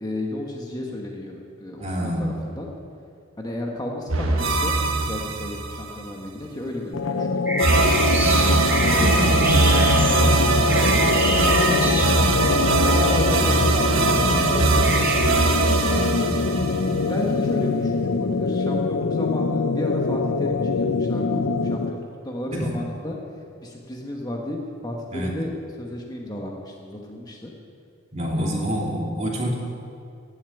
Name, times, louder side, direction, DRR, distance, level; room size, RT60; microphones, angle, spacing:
voice 1, 0.0-2.7 3.4-8.3 9.0-9.5 9.9-11.8 12.1-12.5 12.8-15.2 16.0-16.6 17.1-23.2 23.6-25.5 25.8-27.5 28.3-28.6, left 1 dB, 20° left, 0 dB, 1.3 m, -33 dB
voice 2, 1.8-2.3 8.8-10.1 15.8-16.3 22.5-22.7 25.1-25.3 28.1-29.6, equal, 35° right, -2 dB, 2.6 m, -27 dB
sound 1, 4.1-6.0 7.6-17.3, right 3 dB, 90° right, 1.4 m, -21 dB
sound 2, 6.9-22.1, left 4 dB, 80° left, 0.6 m, -24 dB
sound 3, 7.5-12.5 14.8-15.3, right 1 dB, 10° right, 1.4 m, -27 dB
15.5 x 7.1 x 9.2 m, 2.5 s
head